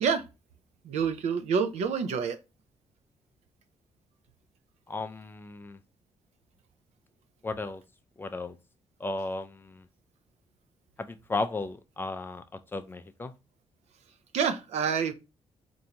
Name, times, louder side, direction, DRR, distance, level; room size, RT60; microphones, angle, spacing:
voice 1, 0.8-2.4 14.3-15.1, right 6 dB, 80° right, 0.5 m, -27 dB
voice 2, 4.9-5.8 7.4-7.8 8.2-8.6 9.0-9.9 11.0-13.3, left 3 dB, 20° left, 0.3 m, -35 dB
4.4 x 2.6 x 2.8 m
cardioid pair, 135°, 11 cm